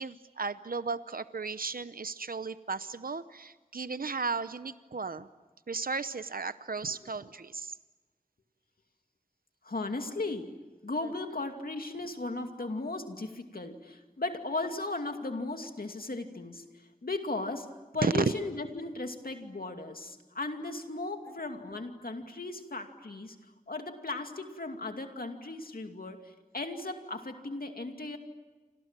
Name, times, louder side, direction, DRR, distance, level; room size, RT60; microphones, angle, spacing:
voice 1, 0.0-5.3 5.7-7.7 11.0-11.1 18.0-18.2, right 4 dB, 80° right, 13 dB, 0.8 m, -34 dB
voice 2, 9.6-10.5 10.8-23.4 23.7-28.2, left 2 dB, 85° left, 5 dB, 2.5 m, -36 dB
29.5 x 26.0 x 7.5 m, 1.3 s
wide cardioid pair, 50°, 15 cm